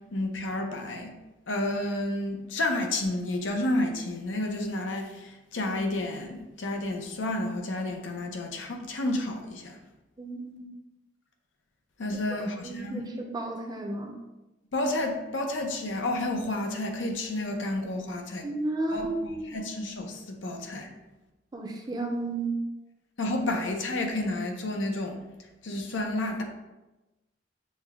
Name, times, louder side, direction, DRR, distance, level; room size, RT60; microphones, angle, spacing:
voice 1, 0.1-1.1 1.5-9.8 12.0-13.0 14.7-18.5 18.9-20.9 23.2-25.2 25.6-26.4, left 1 dB, 90° left, 3 dB, 0.7 m, -31 dB
voice 2, 10.2-10.7 12.6-14.2 18.4-19.6 21.5-22.6, right 2 dB, 20° right, 2 dB, 0.5 m, -33 dB
6.4 x 2.2 x 3.5 m, 1.0 s
head